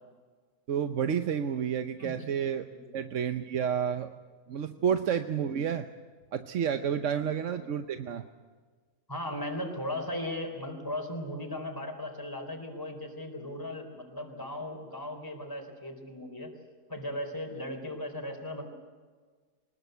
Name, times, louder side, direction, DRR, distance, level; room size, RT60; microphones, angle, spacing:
voice 1, 0.7-2.7 2.9-4.1 4.5-5.9 6.3-8.2, right 8 dB, 55° right, 8 dB, 1.1 m, -30 dB
voice 2, 7.1-7.6 9.1-16.5 16.9-18.6, left 1 dB, 15° left, 4 dB, 4.1 m, -37 dB
24.0 x 20.5 x 8.0 m, 1.5 s
omnidirectional pair, 1.7 m